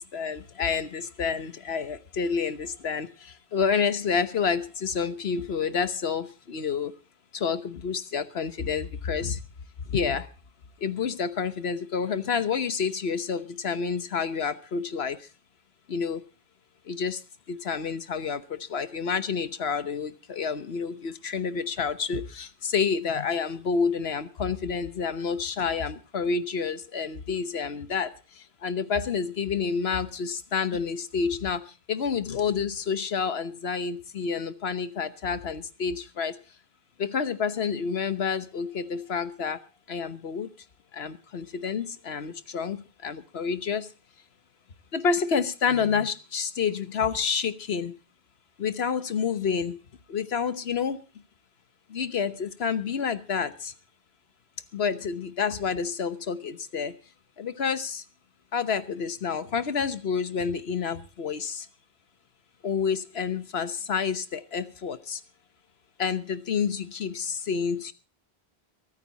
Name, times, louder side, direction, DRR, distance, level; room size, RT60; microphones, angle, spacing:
voice 1, 0.1-3.1 3.5-6.9 7.3-9.4 9.9-10.2 10.8-15.2 15.9-16.2 16.9-17.2 17.5-28.1 28.6-31.6 31.9-36.4 37.0-39.6 39.9-40.5 40.9-43.9 44.9-47.9 48.6-49.8 50.1-51.0 51.9-53.7 54.7-56.9 57.4-58.0 58.5-61.6 62.6-65.2 66.0-67.9, left 6 dB, 70° left, 12 dB, 1.3 m, -29 dB
23.5 x 9.4 x 4.1 m, 0.34 s
omnidirectional pair, 1.1 m